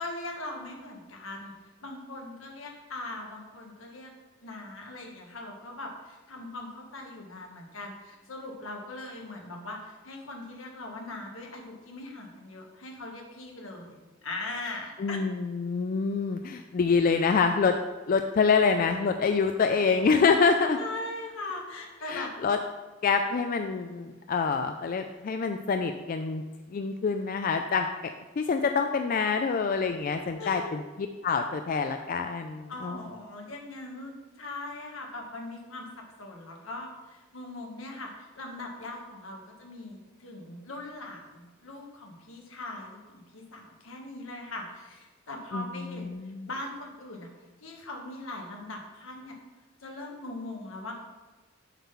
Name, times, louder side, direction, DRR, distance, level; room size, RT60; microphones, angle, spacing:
voice 1, 0.0-1.5 1.8-4.1 4.4-15.2 20.8-22.3 30.4-30.8 32.7-47.3 47.6-49.4 49.8-50.9, left 2 dB, 85° left, 1 dB, 1.4 m, -40 dB
voice 2, 15.0-17.8 18.1-20.8 22.1-22.6 23.0-26.4 26.7-30.8 31.2-33.0 45.5-46.5, left 5 dB, 45° left, 6 dB, 0.3 m, -26 dB
7.1 x 3.8 x 5.7 m, 1.2 s
head